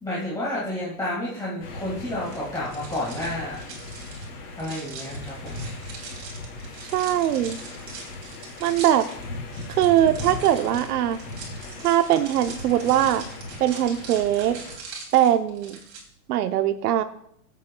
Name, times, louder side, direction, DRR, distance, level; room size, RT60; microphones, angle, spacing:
voice 1, 0.0-3.6 4.6-5.6, left 1 dB, 10° left, -7 dB, 1.7 m, -30 dB
sound 1, 1.6-14.7, left 2 dB, 80° left, 4.0 m, -38 dB
sound 2, 2.2-16.0, right 5 dB, 30° right, 2.7 m, -42 dB
voice 2, 6.9-7.6 8.6-9.1 9.8-11.2 11.8-13.2 13.6-14.6 15.1-15.8 16.3-17.0, right 11 dB, 90° right, 9 dB, 0.8 m, -21 dB
18.0 x 8.2 x 2.2 m, 0.70 s
supercardioid pair, 155°, 44 cm